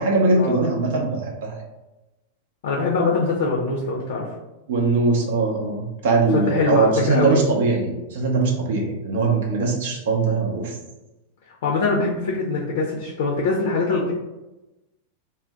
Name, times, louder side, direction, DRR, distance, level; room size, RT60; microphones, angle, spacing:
voice 1, 0.0-1.5 4.7-10.7, right 3 dB, 55° right, 0 dB, 0.6 m, -21 dB
voice 2, 2.6-4.3 6.3-7.4 11.6-14.1, left 3 dB, 55° left, -2 dB, 0.5 m, -23 dB
2.6 x 2.1 x 3.4 m, 1.0 s
figure-of-eight pair, 90°, 0 cm